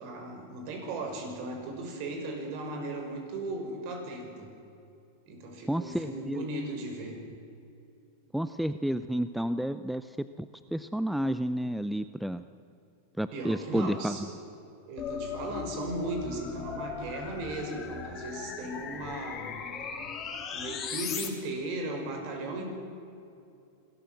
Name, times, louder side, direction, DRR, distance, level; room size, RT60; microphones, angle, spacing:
voice 1, 0.0-4.5 5.3-7.2 13.3-14.4 14.9-19.5 20.5-22.7, right 2 dB, 55° right, 3 dB, 5.8 m, -37 dB
voice 2, 5.7-6.4 8.3-10.0 10.4-12.4 13.2-14.2, equal, ahead, 12 dB, 0.5 m, -31 dB
sound 1, 15.0-21.3, left 6 dB, 30° left, 3.2 m, -38 dB
26.5 x 14.0 x 7.8 m, 2.6 s
hypercardioid pair, 115°, 0 cm